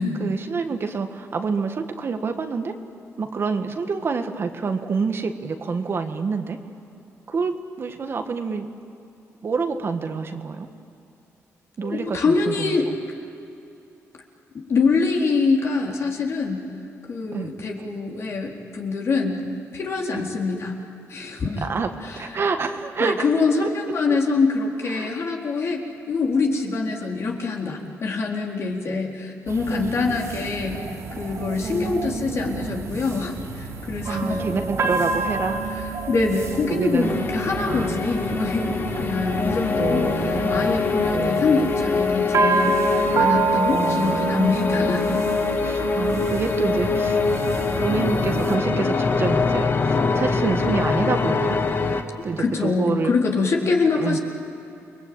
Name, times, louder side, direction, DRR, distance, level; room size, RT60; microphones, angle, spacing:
voice 1, 0.2-2.8 3.2-6.6 7.3-8.7 9.4-10.7 11.8-13.0 17.3-17.5 20.1-20.3 21.6-23.3 23.6-23.7 24.9-25.1 29.7-30.5 31.6-32.7 34.1-35.7 36.7-37.3 37.7-38.1 39.8-40.8 41.1-41.7 43.7-44.9 45.6-47.2 47.7-51.6 52.2-53.1 54.0-54.2, right 5 dB, 45° right, 6 dB, 1.8 m, -27 dB
voice 2, 11.8-12.9 14.7-16.6 17.1-19.4 19.7-20.7 21.1-21.6 22.0-22.2 23.0-25.8 26.1-34.4 36.1-45.1 52.2-54.2, left 4 dB, 55° left, 0 dB, 4.1 m, -24 dB
sound 1, 29.5-48.6, right 4 dB, 65° right, 3.6 m, -28 dB
sound 2, 37.0-52.0, left 4 dB, 40° left, 1.9 m, -24 dB
29.5 x 22.0 x 8.9 m, 2.8 s
cardioid pair, 105°, 6 cm